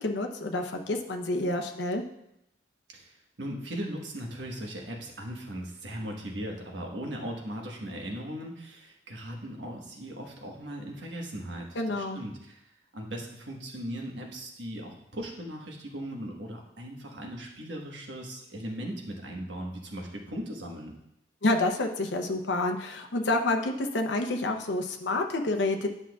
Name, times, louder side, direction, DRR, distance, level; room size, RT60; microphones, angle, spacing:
voice 1, 0.0-2.0 11.8-12.2 21.4-25.9, left 2 dB, 70° left, 3 dB, 0.7 m, -28 dB
voice 2, 2.9-20.9, equal, 75° right, 0 dB, 1.3 m, -38 dB
9.8 x 5.7 x 2.4 m, 0.81 s
head